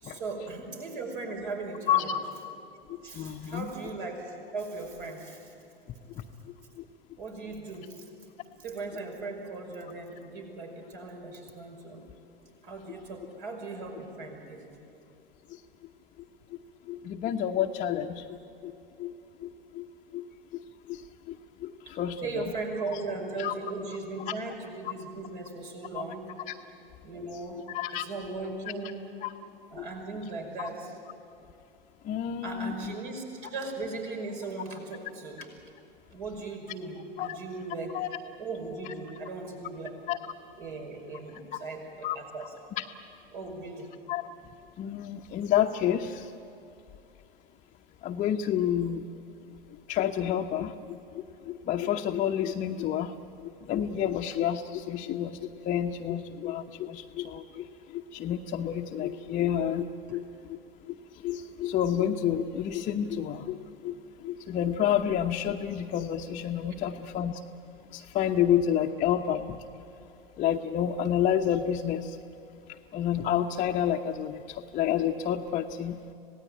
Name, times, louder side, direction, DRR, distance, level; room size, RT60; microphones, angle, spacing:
voice 1, 0.0-2.2 3.0-5.5 7.2-8.0 8.6-12.0 12.6-14.7 22.2-26.3 27.0-27.6 27.9-29.1 29.7-31.0 32.4-35.5 36.1-38.0 38.4-40.0 40.5-42.5 43.3-43.9 60.1-60.2 66.7-66.8, right 3 dB, 60° right, 2 dB, 5.6 m, -38 dB
voice 2, 1.9-2.2 3.1-3.7 16.9-18.4 18.6-18.7 19.0-19.1 19.4-19.9 20.1-20.3 20.9-21.0 21.3-21.4 21.6-22.4 22.9-23.0 23.4-23.5 24.3-24.4 25.9-26.0 26.5-26.6 27.7-28.0 29.2-29.3 29.8-29.9 30.6-30.7 32.0-32.9 37.2-37.4 37.9-38.1 40.1-40.2 41.5-41.6 42.0-42.2 42.8-42.9 44.1-44.2 44.8-46.3 48.0-49.0 49.9-50.7 51.1-53.1 53.4-57.7 57.9-60.2 60.5-60.6 61.2-64.0 64.2-67.4 67.9-69.6 70.4-72.2 72.9-76.0, left 10 dB, 25° left, 2 dB, 0.9 m, -29 dB
26.5 x 18.0 x 9.3 m, 2.6 s
figure-of-eight pair, 90°, 29 cm